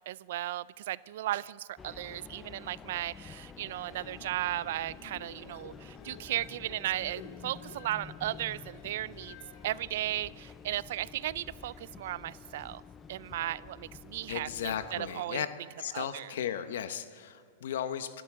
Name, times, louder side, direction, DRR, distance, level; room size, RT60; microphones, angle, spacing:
voice 1, 0.1-9.4 9.6-12.8 13.1-15.4 15.9-16.3, right 14 dB, 70° right, 21 dB, 0.3 m, -36 dB
sound 1, 1.8-15.1, left 6 dB, 20° left, 0.5 m, -50 dB
sound 2, 3.7-10.5, left 5 dB, 60° left, 2.4 m, -53 dB
voice 2, 14.3-15.5 15.8-18.2, left 9 dB, 80° left, 11 dB, 0.9 m, -35 dB
28.0 x 12.0 x 3.7 m, 2.4 s
hypercardioid pair, 125°, 0 cm